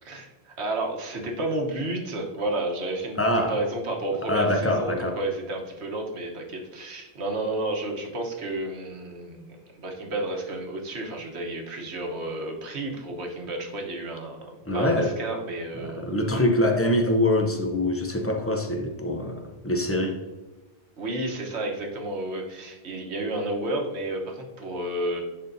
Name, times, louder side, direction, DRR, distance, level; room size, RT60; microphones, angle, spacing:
voice 1, 0.0-16.4 21.0-25.2, right 1 dB, 75° right, 1 dB, 1.4 m, -31 dB
voice 2, 3.2-3.6 4.2-5.2 14.7-15.1 15.8-20.2, left 1 dB, 15° left, 3 dB, 0.5 m, -24 dB
10.5 x 4.0 x 2.6 m, 1.2 s
omnidirectional pair, 1.1 m